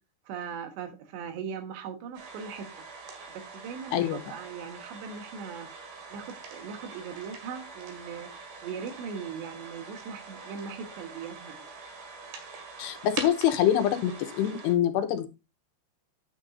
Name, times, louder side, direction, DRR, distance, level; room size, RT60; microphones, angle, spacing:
voice 1, 0.3-2.7 3.3-5.7 6.1-8.3 8.6-11.7, right 6 dB, 85° right, 3.6 m, -39 dB
sound 1, 2.1-14.7, right 4 dB, 65° right, 3.5 m, -44 dB
voice 2, 12.8-15.3, left 10 dB, 85° left, 3.0 m, -25 dB
9.9 x 8.2 x 2.6 m
omnidirectional pair, 4.9 m